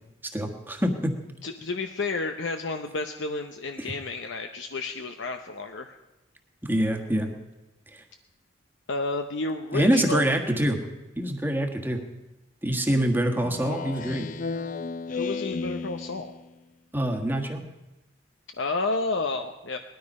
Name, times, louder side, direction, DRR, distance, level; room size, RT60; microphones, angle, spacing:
voice 1, 0.3-1.1 3.8-3.9 6.6-7.3 7.9-8.0 9.7-10.8 11.2-12.0 12.6-14.3 16.9-17.6, right 1 dB, 10° right, 3 dB, 1.4 m, -25 dB
voice 2, 1.4-5.9 8.9-10.3 15.1-16.3 18.6-19.8, left 3 dB, 70° left, 6 dB, 0.8 m, -31 dB
Speech synthesizer, 13.4-16.5, left 4 dB, 40° left, 0.5 m, -33 dB
19.5 x 13.0 x 5.4 m, 1.1 s
head